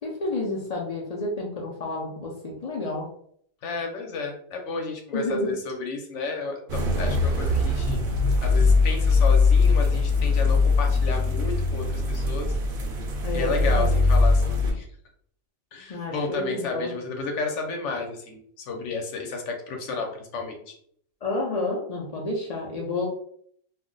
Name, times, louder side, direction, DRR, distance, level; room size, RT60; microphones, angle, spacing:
voice 1, 0.0-3.1 5.1-5.6 13.2-14.0 15.9-16.9 21.2-23.1, left 2 dB, 85° left, -2 dB, 0.3 m, -30 dB
voice 2, 3.6-8.0 8.4-12.5 13.3-14.8 15.7-20.8, left 4 dB, 65° left, 3 dB, 0.9 m, -32 dB
sound 1, 6.7-14.7, left 3 dB, 60° right, 0.6 m, -21 dB
2.4 x 2.1 x 3.7 m, 0.64 s
omnidirectional pair, 1.4 m